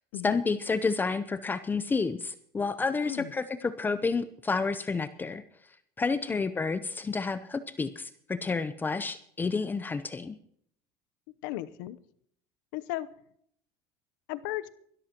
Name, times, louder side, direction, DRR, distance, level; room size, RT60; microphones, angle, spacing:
voice 1, 0.2-5.4 6.0-10.4, left 4 dB, 20° left, 12 dB, 0.7 m, -30 dB
voice 2, 11.4-12.0 12.7-13.1 14.3-14.8, left 16 dB, 85° left, 14 dB, 0.8 m, -36 dB
22.5 x 13.0 x 3.0 m, 0.67 s
supercardioid pair, 115°, 10 cm